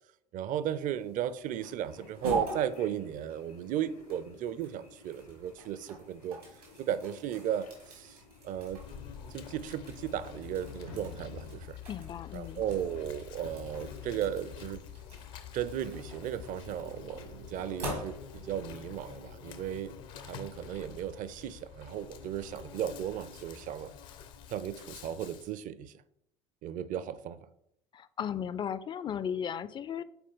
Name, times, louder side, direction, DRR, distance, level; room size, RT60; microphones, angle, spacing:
voice 1, 0.3-6.4 6.8-8.2 8.4-8.8 9.3-11.8 12.3-14.8 15.5-23.9 24.5-25.9 26.6-27.4, right 10 dB, 45° right, 0.5 m, -35 dB
sound 1, 0.6-18.6, right 3 dB, 90° right, 2.0 m, -44 dB
sound 2, 1.8-14.2, left 3 dB, 80° left, 1.2 m, -59 dB
Insect, 8.5-25.5, left 7 dB, 65° left, 0.7 m, -47 dB
voice 2, 11.9-12.6 27.9-30.0, left 8 dB, 25° left, 0.4 m, -36 dB
7.0 x 4.3 x 3.7 m
figure-of-eight pair, 60°, 19 cm